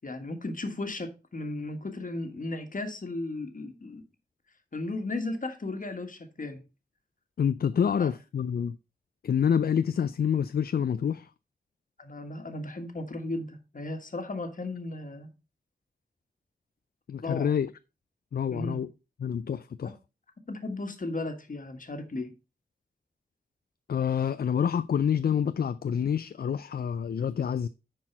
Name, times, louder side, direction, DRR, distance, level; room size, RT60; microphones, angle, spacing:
voice 1, 0.0-4.0 4.7-6.6 8.0-8.1 12.0-15.3 17.2-17.5 18.5-18.8 20.5-22.3, left 2 dB, 50° left, 1.5 m, -35 dB
voice 2, 7.4-8.8 9.2-11.3 17.1-17.7 18.3-18.9 19.2-19.9 23.9-27.7, left 8 dB, 65° left, 0.4 m, -27 dB
9.9 x 4.6 x 4.5 m
wide cardioid pair, 85°, 17 cm